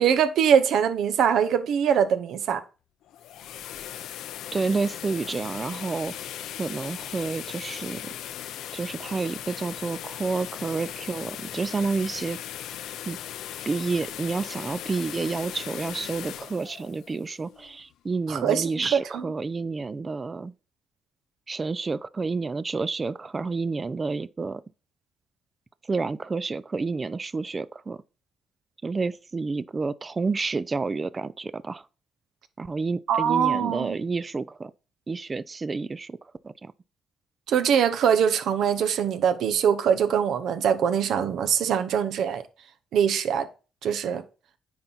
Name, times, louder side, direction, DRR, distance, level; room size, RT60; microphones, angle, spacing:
voice 1, 0.0-2.6 18.3-19.2 33.1-34.0 37.5-42.4 42.9-43.5 43.8-44.2, right 8 dB, 75° right, 0.8 m, -23 dB
sound 1, 3.0-17.9, left 11 dB, 85° left, 0.5 m, -38 dB
voice 2, 4.5-6.1 6.6-8.1 8.7-12.4 13.1-13.2 13.7-20.5 21.5-24.6 25.9-28.0 28.8-31.9 32.6-34.7 35.1-36.2 36.4-36.7, right 4 dB, 30° right, 0.4 m, -29 dB
9.5 x 4.5 x 4.0 m
cardioid pair, 90°, 0 cm